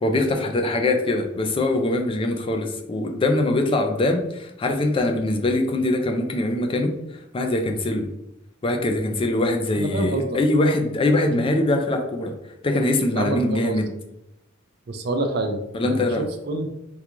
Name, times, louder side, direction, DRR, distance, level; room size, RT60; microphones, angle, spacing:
voice 1, 0.0-6.9 7.3-8.1 8.6-12.3 12.6-13.9 15.7-16.3, left 2 dB, 25° left, 4 dB, 0.3 m, -22 dB
voice 2, 9.7-10.4 13.1-13.8 14.9-16.7, right 2 dB, 55° right, 6 dB, 0.5 m, -27 dB
3.7 x 2.3 x 3.0 m, 0.86 s
head